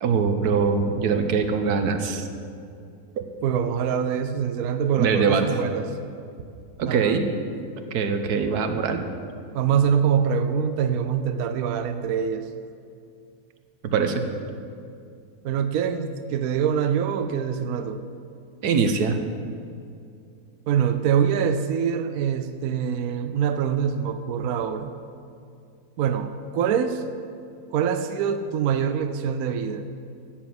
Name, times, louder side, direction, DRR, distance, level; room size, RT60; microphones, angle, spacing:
voice 1, 0.0-2.3 3.2-3.3 5.0-5.5 6.8-7.2 7.9-9.1 13.9-14.2 18.6-19.2, right 5 dB, 85° right, 7 dB, 1.4 m, -22 dB
voice 2, 3.4-5.9 6.9-7.2 9.5-12.5 15.4-18.0 20.7-24.9 26.0-27.0 27.7-29.9, right 7 dB, 70° right, 9 dB, 1.1 m, -24 dB
12.5 x 7.6 x 7.8 m, 2.4 s
omnidirectional pair, 1.6 m